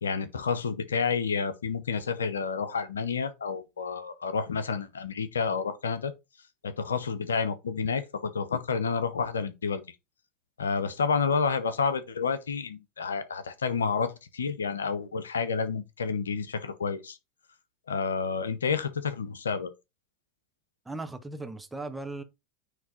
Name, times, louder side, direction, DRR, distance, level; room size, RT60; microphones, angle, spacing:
voice 1, 0.0-6.1 6.6-9.8 10.6-17.2 17.9-19.7, left 5 dB, 85° left, 0.8 m, -30 dB
voice 2, 20.8-22.2, right 2 dB, 10° right, 1.2 m, -37 dB
9.4 x 3.4 x 4.2 m
hypercardioid pair, 85°, 0 cm